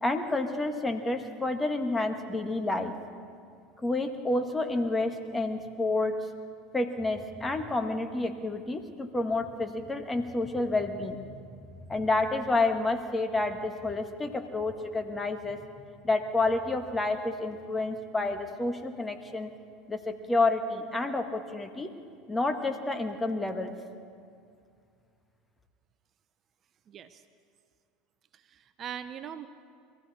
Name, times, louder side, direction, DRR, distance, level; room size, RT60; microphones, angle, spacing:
voice 1, 0.0-2.9 3.8-6.2 6.7-11.4 11.9-15.7 16.0-19.5 19.9-22.0 22.3-23.7, left 2 dB, 15° left, 6 dB, 1.6 m, -29 dB
voice 2, 26.9-27.2 28.3-29.5, right 9 dB, 40° right, 11 dB, 0.7 m, -41 dB
22.5 x 15.0 x 4.2 m, 2.3 s
hypercardioid pair, 80°, 0 cm